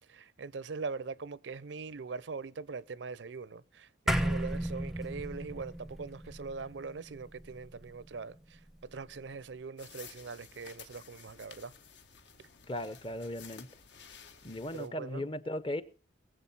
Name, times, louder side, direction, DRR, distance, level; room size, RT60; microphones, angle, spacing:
voice 1, 0.1-11.7 12.4-12.5 14.7-15.3, right 4 dB, 75° right, 0.6 m, -42 dB
sound 1, 4.1-8.7, right 1 dB, ahead, 0.6 m, -35 dB
sound 2, 9.8-14.9, left 7 dB, 75° left, 1.6 m, -53 dB
voice 2, 12.7-13.7 14.4-15.8, left 1 dB, 30° left, 0.7 m, -37 dB
20.5 x 7.9 x 5.6 m
head